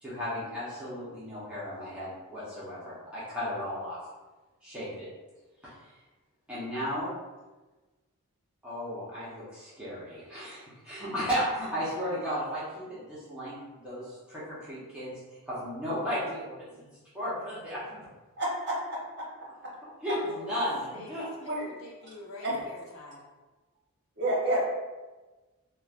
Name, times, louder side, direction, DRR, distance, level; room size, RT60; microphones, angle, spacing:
voice 1, 0.0-4.0 4.6-5.1 5.6-5.7 6.5-7.1 8.6-13.6 13.8-15.2 15.5-16.9 17.1-17.8 20.0-21.3, equal, 5° right, -10 dB, 0.6 m, -34 dB
voice 2, 18.4-19.3 21.4-21.7 22.4-22.6 24.2-24.6, right 1 dB, 50° right, -3 dB, 0.7 m, -29 dB
voice 3, 20.1-23.3, left 2 dB, 60° left, -1 dB, 0.5 m, -46 dB
3.0 x 2.1 x 2.3 m, 1.2 s
head